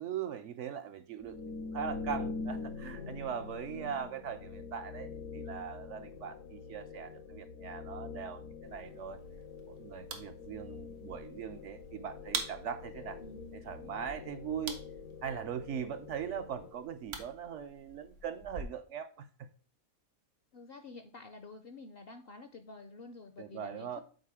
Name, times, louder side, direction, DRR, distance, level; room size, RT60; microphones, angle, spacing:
voice 1, 0.0-9.2 9.7-13.2 13.5-14.8 15.2-19.5 23.4-24.0, right 8 dB, 65° right, 0.8 m, -40 dB
sound 1, 1.2-17.0, left 4 dB, 75° left, 1.1 m, -44 dB
voice 2, 3.7-4.1 13.2-13.6 20.5-24.0, left 3 dB, 60° left, 0.6 m, -49 dB
sound 2, 8.6-18.6, right 5 dB, 90° right, 1.6 m, -46 dB
6.5 x 4.3 x 4.8 m
omnidirectional pair, 1.5 m